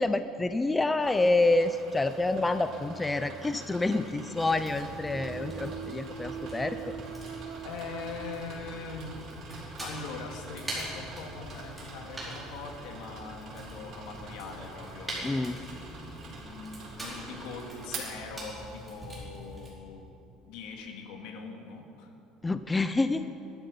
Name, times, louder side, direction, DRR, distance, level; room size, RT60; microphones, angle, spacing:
voice 1, 0.0-7.0 15.2-15.6 22.4-23.3, left 2 dB, 10° left, 10 dB, 0.4 m, -27 dB
sound 1, 1.0-19.0, right 3 dB, 50° right, 3.7 m, -46 dB
sound 2, 2.1-2.3 4.3-9.4 10.1-10.3 11.1-11.2, right 9 dB, 90° right, 1.4 m, -43 dB
Fire, 4.4-19.7, right 1 dB, 10° right, 4.5 m, -44 dB
voice 2, 7.6-9.3 9.8-20.2 20.5-22.1, left 4 dB, 75° left, 2 dB, 2.2 m, -42 dB
20.5 x 12.0 x 5.4 m, 2.9 s
cardioid pair, 155°, 0 cm